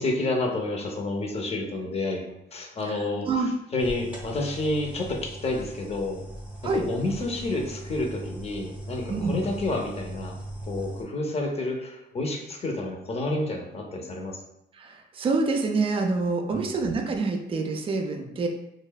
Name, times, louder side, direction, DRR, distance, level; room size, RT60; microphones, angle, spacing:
voice 1, 0.0-3.3 3.7-6.2 6.7-10.4 10.7-14.4 16.5-16.7, left 2 dB, 30° left, 2 dB, 0.6 m, -29 dB
voice 2, 2.9-3.5 6.6-6.8 9.1-9.4 14.7-18.5, right 3 dB, 30° right, 3 dB, 0.3 m, -27 dB
sound 1, 3.8-11.0, right 1 dB, 5° right, 0.7 m, -39 dB
3.1 x 2.0 x 2.2 m, 0.84 s
cardioid pair, 90°, 20 cm